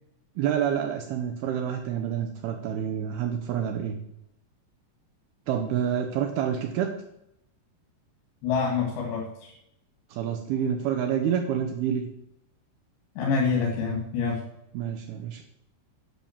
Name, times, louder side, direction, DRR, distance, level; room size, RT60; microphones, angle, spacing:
voice 1, 0.4-4.0 5.5-6.9 10.1-12.1 14.7-15.4, right 9 dB, 80° right, 5 dB, 2.3 m, -28 dB
voice 2, 8.4-9.5 13.2-14.4, left 5 dB, 70° left, -3 dB, 4.2 m, -26 dB
10.5 x 7.3 x 7.3 m, 0.80 s
omnidirectional pair, 5.4 m